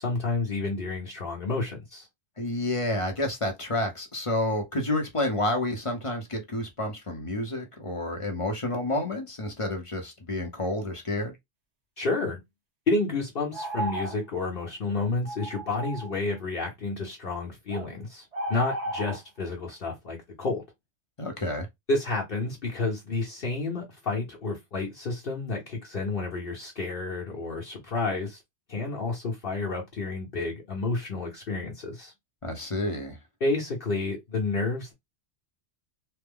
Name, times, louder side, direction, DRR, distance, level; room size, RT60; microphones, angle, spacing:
voice 1, 0.0-2.1 12.0-12.4 12.9-20.6 21.9-28.4 28.7-32.1 33.4-34.9, left 3 dB, 55° left, 1.0 m, -30 dB
voice 2, 2.4-11.3 21.2-21.7 32.4-33.2, left 1 dB, 35° left, 0.7 m, -29 dB
sound 1, 13.5-14.2 14.6-14.7 15.2-16.2 17.7-17.9 18.3-19.2, right 1 dB, 80° right, 1.4 m, -34 dB
3.3 x 2.1 x 3.5 m
omnidirectional pair, 1.1 m